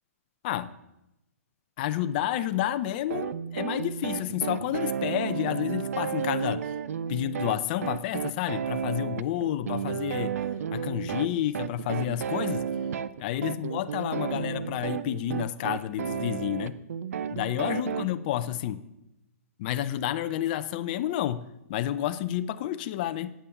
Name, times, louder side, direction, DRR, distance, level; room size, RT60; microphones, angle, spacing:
voice 1, 1.8-6.7 7.1-10.4 10.7-12.6 13.2-16.7 17.3-18.8 19.6-21.4 21.7-23.3, left 12 dB, 35° left, 11 dB, 0.6 m, -30 dB
sound 1, 3.1-18.1, right 7 dB, 70° right, 0.6 m, -32 dB
9.9 x 8.7 x 7.0 m, 0.89 s
hypercardioid pair, 155°, 8 cm